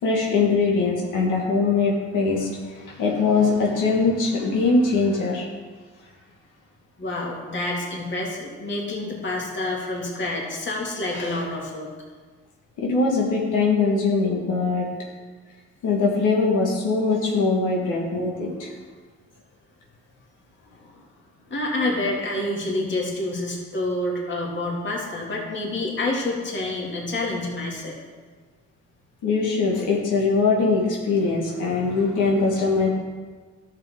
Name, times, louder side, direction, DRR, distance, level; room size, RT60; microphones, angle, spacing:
voice 1, 0.0-5.5 12.8-14.9 15.8-18.7 29.2-32.9, left 4 dB, 90° left, -2 dB, 1.7 m, -22 dB
voice 2, 7.0-11.9 21.5-28.0, left 2 dB, 40° left, -2 dB, 2.5 m, -28 dB
12.0 x 6.7 x 3.7 m, 1.4 s
cardioid pair, 90°, 30 cm